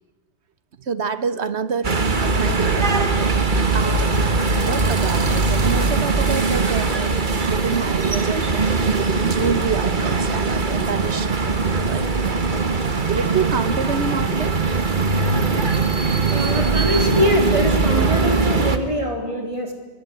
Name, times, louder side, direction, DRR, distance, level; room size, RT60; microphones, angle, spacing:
voice 1, 0.8-8.7 9.2-11.3 11.9-12.7 13.1-14.6, right 6 dB, 75° right, 13 dB, 1.4 m, -27 dB
sound 1, 1.8-18.8, right 3 dB, 45° right, 1.6 m, -20 dB
voice 2, 16.3-19.7, equal, 30° right, 3 dB, 3.8 m, -23 dB
25.0 x 22.0 x 8.4 m, 1.3 s
omnidirectional pair, 1.1 m